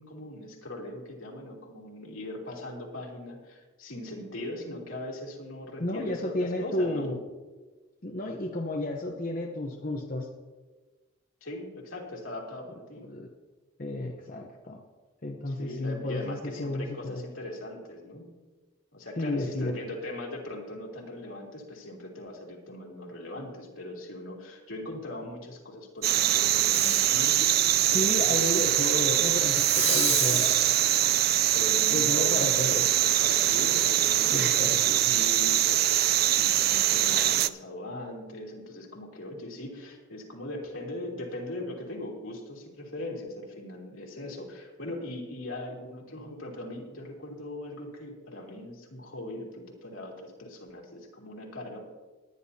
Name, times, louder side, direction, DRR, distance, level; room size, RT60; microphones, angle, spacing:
voice 1, 0.0-7.1 11.4-13.1 15.5-18.3 18.9-28.4 31.5-51.8, left 1 dB, 80° left, -2 dB, 3.0 m, -40 dB
voice 2, 5.8-7.2 8.0-10.3 13.0-13.3 13.8-14.8 15.2-17.2 19.2-19.7 27.9-30.8 31.9-32.9 34.3-35.1, left 2 dB, 40° left, 0 dB, 0.9 m, -32 dB
sound 1, 26.0-37.5, right 12 dB, 45° right, 0.4 m, -23 dB
Fireworks, 26.5-27.2 27.7-28.7 29.5-31.9 32.5-32.6, equal, 10° right, 3.9 m, -35 dB
20.0 x 10.0 x 2.8 m, 1.3 s
head